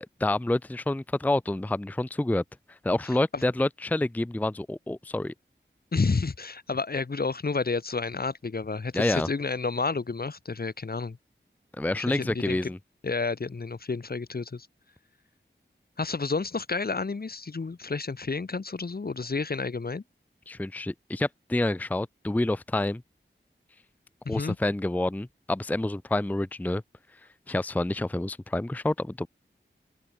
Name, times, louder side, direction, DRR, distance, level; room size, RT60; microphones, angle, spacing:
voice 1, 0.0-2.4 2.8-5.3 8.9-9.3 11.8-12.8 20.5-23.0 24.3-26.8 27.5-29.3, left 1 dB, 10° left, 0.5 m, -28 dB
voice 2, 5.9-11.2 12.0-12.7 13.0-14.7 16.0-20.0 24.2-24.6, left 4 dB, 50° left, 0.9 m, -30 dB
open air
wide cardioid pair, 55°, 20 cm